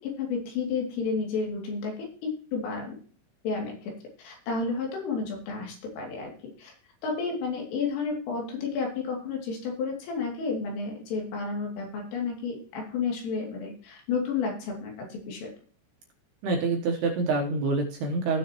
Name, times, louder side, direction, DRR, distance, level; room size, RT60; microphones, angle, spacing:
voice 1, 0.0-3.0 3.4-3.9 4.2-6.3 6.6-6.7 7.0-15.5, left 4 dB, 75° left, 0 dB, 5.1 m, -31 dB
voice 2, 16.4-18.4, right 3 dB, 70° right, 1 dB, 2.6 m, -26 dB
16.0 x 6.5 x 3.0 m, 0.43 s
omnidirectional pair, 6.0 m